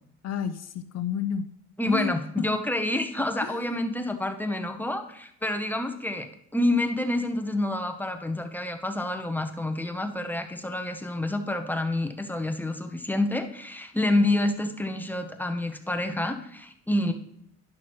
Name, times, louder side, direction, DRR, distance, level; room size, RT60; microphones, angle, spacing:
voice 1, 0.2-1.5 1.8-2.1 3.4-3.6 16.9-17.1, left 8 dB, 60° left, 10 dB, 0.5 m, -31 dB
voice 2, 1.8-6.3 6.5-17.1, left 1 dB, 5° left, 6 dB, 0.8 m, -28 dB
11.0 x 6.0 x 3.0 m, 0.70 s
cardioid pair, 90°, 30 cm